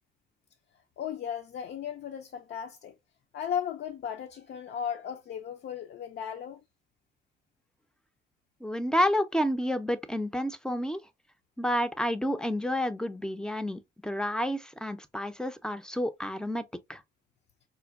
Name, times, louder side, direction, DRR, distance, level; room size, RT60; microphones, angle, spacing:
voice 1, 1.0-2.9 3.3-6.6, left 8 dB, 60° left, 0.5 m, -36 dB
voice 2, 8.6-11.0 11.6-16.6 16.9-17.0, equal, 5° left, 0.4 m, -30 dB
5.0 x 2.2 x 2.3 m
cardioid pair, 90°, 20 cm